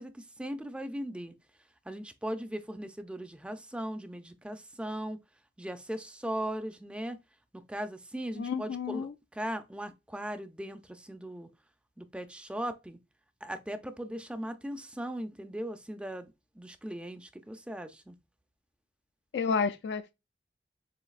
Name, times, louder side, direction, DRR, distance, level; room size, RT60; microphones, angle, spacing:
voice 1, 0.0-1.3 1.9-5.2 5.6-7.2 7.5-11.5 12.0-13.0 13.4-18.2, right 1 dB, 5° right, 0.4 m, -38 dB
voice 2, 8.4-9.1 19.3-20.1, left 5 dB, 70° left, 0.3 m, -31 dB
7.1 x 2.7 x 2.4 m
head